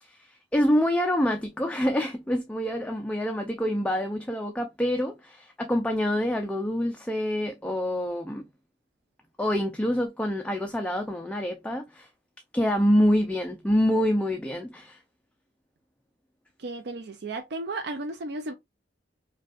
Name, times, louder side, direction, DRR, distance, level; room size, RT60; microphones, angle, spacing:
voice 1, 0.0-8.4 9.4-12.1 12.5-15.0, equal, 5° left, 0.4 m, -26 dB
voice 2, 16.6-18.5, right 2 dB, 60° right, 0.5 m, -34 dB
5.0 x 2.3 x 2.3 m
head